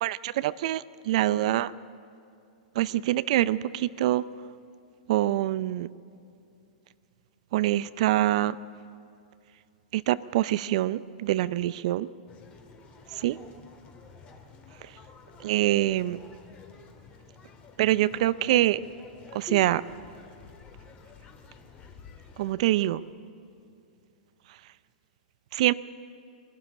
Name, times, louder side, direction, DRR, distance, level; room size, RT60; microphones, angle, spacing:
voice 1, 0.0-1.7 2.8-4.2 5.1-5.9 7.5-8.5 9.9-12.1 13.2-13.4 15.4-16.2 17.8-18.8 19.3-19.8 22.4-23.0 25.5-25.7, right 14 dB, 60° right, 17 dB, 0.5 m, -25 dB
sound 1, 12.3-22.5, left 5 dB, 30° left, 2.2 m, -49 dB
21.5 x 12.0 x 10.0 m, 2.5 s
hypercardioid pair, 115°, 4 cm